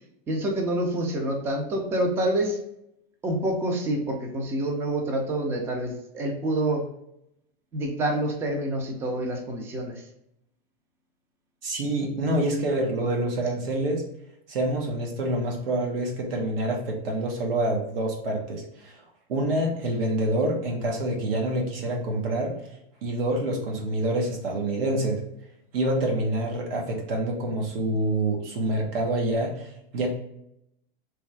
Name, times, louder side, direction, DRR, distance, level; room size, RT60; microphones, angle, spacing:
voice 1, 0.3-2.6 3.2-6.9 7.7-10.1, right 1 dB, 10° right, 2 dB, 0.3 m, -27 dB
voice 2, 11.6-14.1 14.5-19.0 19.3-22.6 23.0-25.2 25.7-30.1, right 1 dB, 75° right, 0 dB, 1.2 m, -27 dB
3.4 x 3.2 x 3.2 m, 0.79 s
supercardioid pair, 160°, 29 cm